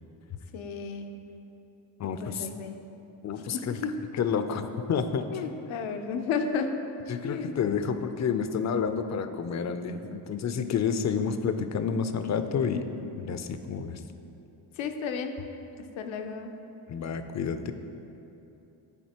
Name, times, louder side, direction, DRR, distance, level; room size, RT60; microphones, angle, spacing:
voice 1, 0.5-1.1 2.0-2.8 3.5-3.9 5.3-6.8 7.2-7.6 14.8-15.4 16.0-16.6, left 5 dB, 80° left, 6 dB, 0.7 m, -33 dB
voice 2, 2.0-2.5 3.2-3.8 4.1-5.3 7.1-12.8 13.2-14.0 16.9-17.7, left 6 dB, 40° left, 9 dB, 0.4 m, -29 dB
11.0 x 4.0 x 2.9 m, 2.9 s
cardioid pair, 75°, 47 cm